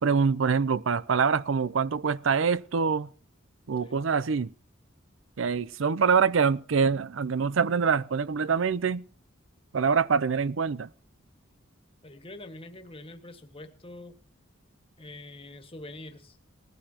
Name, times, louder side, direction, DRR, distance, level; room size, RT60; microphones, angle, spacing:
voice 1, 0.0-3.1 3.7-4.5 5.4-9.0 9.7-10.9, right 5 dB, 70° right, 0.5 m, -25 dB
voice 2, 3.8-4.1 12.0-14.2 15.0-16.4, left 2 dB, 30° left, 1.7 m, -45 dB
19.5 x 15.0 x 2.9 m
head